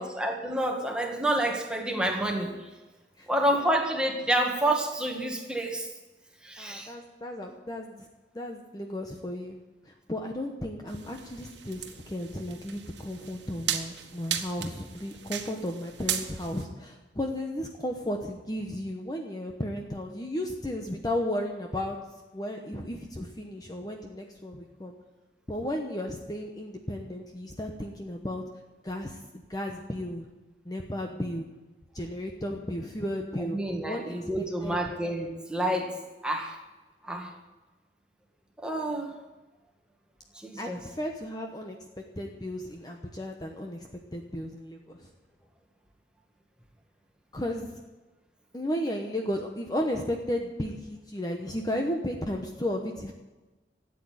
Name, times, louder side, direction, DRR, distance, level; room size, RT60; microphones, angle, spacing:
voice 1, 0.0-2.5 3.3-5.9 6.4-6.9 33.4-36.6 37.0-37.3 38.6-39.2 40.3-40.8, right 1 dB, 5° right, 1 dB, 1.9 m, -29 dB
voice 2, 6.6-8.1 8.3-9.6 9.9-22.0 22.3-24.9 25.5-28.4 28.8-30.3 30.6-31.5 31.9-33.6 33.8-34.8 40.6-41.8 42.2-43.8 44.1-45.1 47.3-47.7 48.5-53.1, left 1 dB, 20° left, 2 dB, 1.0 m, -34 dB
sound 1, 10.9-16.7, right 9 dB, 90° right, 1.4 m, -36 dB
13.0 x 8.6 x 9.6 m, 1.2 s
head